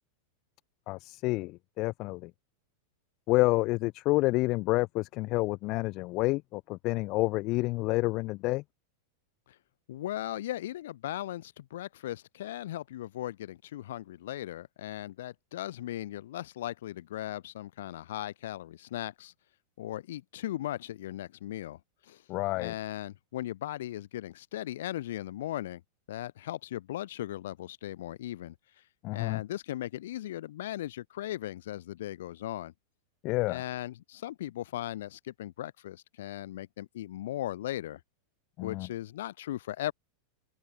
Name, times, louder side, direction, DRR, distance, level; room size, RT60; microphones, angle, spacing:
voice 1, 0.9-2.3 3.3-8.6 22.3-22.7 29.0-29.4 33.2-33.6 38.6-38.9, left 21 dB, 40° left, 0.3 m, -29 dB
voice 2, 9.9-19.3 19.8-22.2 22.5-25.8 26.1-28.5 29.1-32.7 33.5-38.0 38.6-39.9, left 13 dB, 55° left, 1.5 m, -38 dB
open air
figure-of-eight pair, 90°, 0 cm